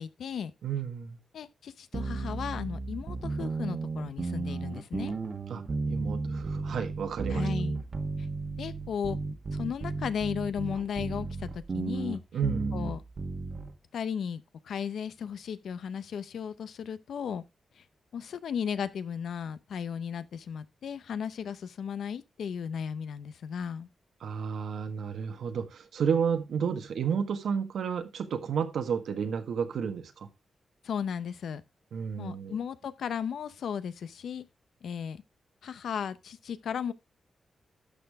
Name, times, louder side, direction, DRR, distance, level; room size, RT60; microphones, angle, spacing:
voice 1, 0.0-0.5 1.3-5.1 7.3-7.8 8.6-9.2 9.5-12.2 12.7-13.0 13.9-17.4 17.8-17.9 18.1-23.9 30.8-31.6 32.2-34.5 34.8-35.2 35.6-36.9, left 7 dB, 80° left, 0.8 m, -35 dB
voice 2, 0.6-1.2 5.5-7.4 12.3-12.8 24.2-30.3 31.9-32.6, right 7 dB, 80° right, 1.6 m, -31 dB
sound 1, 1.9-13.7, right 3 dB, 40° right, 1.3 m, -34 dB
12.5 x 6.9 x 3.6 m
wide cardioid pair, 160°, 0 cm